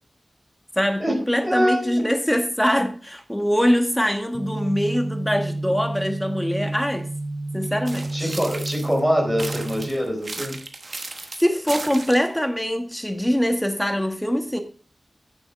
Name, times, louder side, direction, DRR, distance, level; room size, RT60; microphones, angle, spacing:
voice 1, 0.8-7.1 7.5-8.4 11.4-14.6, equal, 5° left, 6 dB, 1.4 m, -23 dB
voice 2, 1.4-2.0 8.1-10.6, equal, 10° right, 1 dB, 4.1 m, -24 dB
sound 1, 4.3-9.9, right 2 dB, 40° right, 0.6 m, -30 dB
sound 2, 7.9-9.0 9.4-12.4, right 3 dB, 55° right, 1.2 m, -35 dB
8.7 x 7.2 x 4.5 m, 0.42 s
wide cardioid pair, 65°, 0 cm